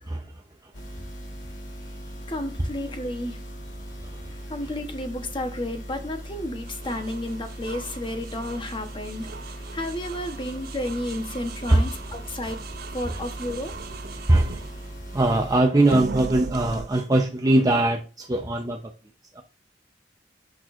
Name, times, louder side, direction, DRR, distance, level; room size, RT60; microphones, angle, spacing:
voice 1, 0.0-0.7 3.9-4.7 11.7-12.2 13.0-13.2 14.1-14.6 15.1-18.9 19.3-19.4, right 1 dB, 20° right, 0.7 m, -22 dB
sound 1, 0.7-15.6, equal, 85° left, 2.5 m, -39 dB
voice 2, 2.3-3.4 4.5-9.3 9.7-12.6 12.9-13.7, left 1 dB, 30° left, 1.0 m, -32 dB
sound 2, 6.7-15.5 15.8-16.9, right 4 dB, 55° right, 0.5 m, -39 dB
8.6 x 6.0 x 2.5 m
head